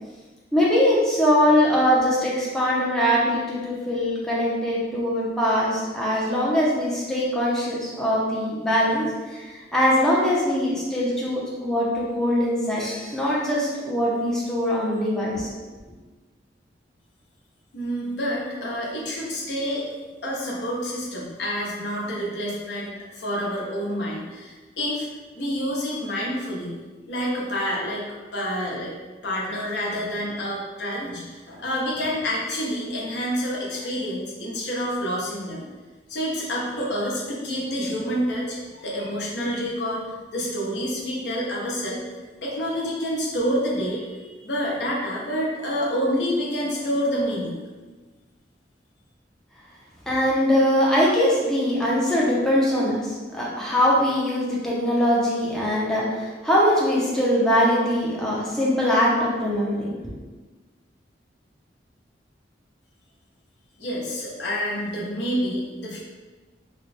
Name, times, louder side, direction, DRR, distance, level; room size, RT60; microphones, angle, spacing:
voice 1, 0.5-9.1 9.3-15.5 50.1-60.0, equal, 5° left, -6 dB, 0.5 m, -22 dB
voice 2, 17.7-19.9 20.2-25.1 25.3-26.7 27.1-28.0 28.3-28.9 29.2-35.6 36.1-47.6 63.8-66.0, equal, 65° left, -5 dB, 0.9 m, -28 dB
3.2 x 2.1 x 4.1 m, 1.3 s
head